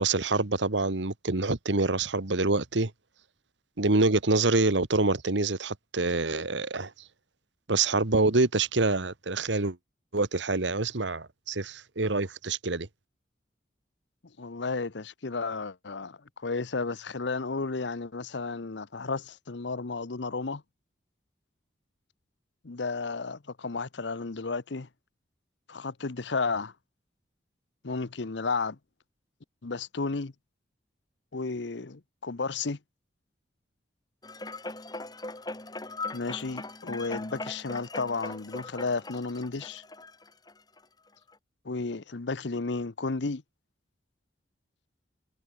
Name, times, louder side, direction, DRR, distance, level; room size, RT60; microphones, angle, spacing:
voice 1, 0.0-2.9 3.8-6.9 7.7-9.8 10.1-12.9, right 3 dB, 75° right, 1.5 m, -26 dB
voice 2, 14.4-20.6 22.6-24.9 25.7-26.7 27.8-28.8 29.6-30.3 31.3-32.8 36.1-39.8 41.6-43.4, left 4 dB, 70° left, 0.9 m, -33 dB
sound 1, 34.2-40.8 41.3-41.4, left 2 dB, 20° left, 3.5 m, -40 dB
head